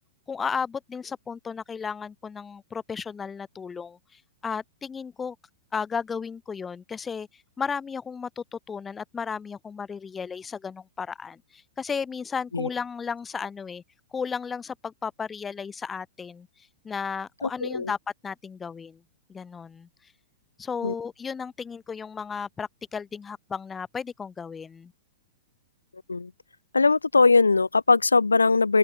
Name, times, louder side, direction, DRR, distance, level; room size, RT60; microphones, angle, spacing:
voice 1, 0.3-5.4 5.7-13.8 14.1-16.5 16.8-18.0 18.2-19.0 19.3-19.9 20.6-24.9, left 6 dB, 15° left, 1.4 m, -34 dB
voice 2, 17.4-17.9 20.8-20.9 26.1-26.3 26.7-28.8, left 4 dB, 85° left, 1.2 m, -20 dB
open air
figure-of-eight pair, 105°, 0 cm